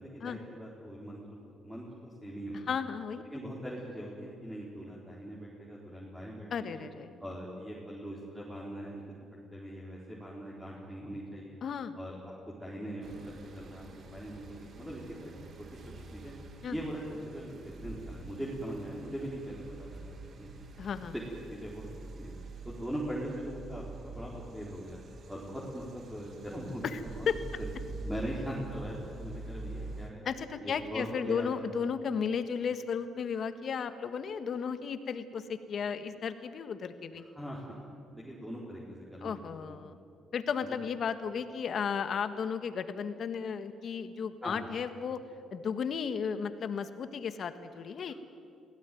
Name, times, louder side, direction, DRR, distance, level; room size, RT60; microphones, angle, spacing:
voice 1, 0.0-2.6 3.3-6.8 7.2-9.0 9.5-11.6 11.9-15.3 15.6-15.7 16.1-16.3 16.7-20.5 21.1-21.2 21.5-21.9 22.1-22.3 22.6-25.0 25.3-27.3 27.6-27.7 28.0-30.2 30.6-31.7 37.1-37.8 38.1-39.8 40.6-40.8 44.4-44.7 48.1-48.2, equal, 5° right, -5 dB, 4.3 m, -41 dB
voice 2, 2.7-3.2 6.5-7.2 11.6-12.0 16.6-16.8 20.8-21.1 26.8-27.4 30.2-37.2 39.2-39.9 40.3-45.2 45.5-48.1, left 6 dB, 60° left, 10 dB, 1.5 m, -34 dB
sound 1, 13.0-30.1, right 3 dB, 60° right, 2.4 m, -46 dB
22.0 x 16.5 x 9.4 m, 2.4 s
cardioid pair, 75°, 0 cm